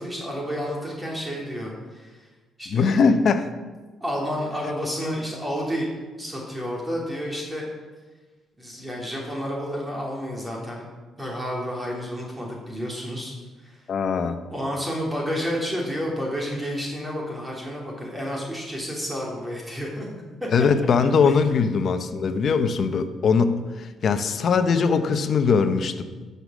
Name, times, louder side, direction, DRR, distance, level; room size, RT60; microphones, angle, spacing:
voice 1, 0.0-2.3 2.6-3.0 4.0-5.9 6.2-7.7 8.6-10.8 11.2-13.3 13.6-13.8 14.5-20.1 20.4-20.7 21.2-21.3, equal, 10° right, -2 dB, 3.1 m, -30 dB
voice 2, 2.7-3.5 13.9-14.4 20.5-26.0, left 5 dB, 55° left, 8 dB, 1.0 m, -21 dB
12.5 x 7.0 x 6.2 m, 1.3 s
cardioid pair, 90°, 0 cm